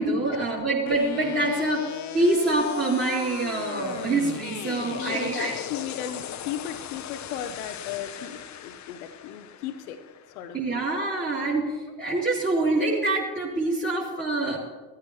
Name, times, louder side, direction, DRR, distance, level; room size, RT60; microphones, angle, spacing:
voice 1, 0.0-1.9 2.1-5.6 10.5-14.6, right 2 dB, 20° right, -6 dB, 3.1 m, -25 dB
sound 1, 0.9-10.9, left 10 dB, 40° left, 0.8 m, -36 dB
voice 2, 4.9-10.0 10.3-10.9, left 9 dB, 70° left, 8 dB, 0.8 m, -36 dB
17.0 x 13.0 x 3.1 m, 1.3 s
figure-of-eight pair, 50°, 45 cm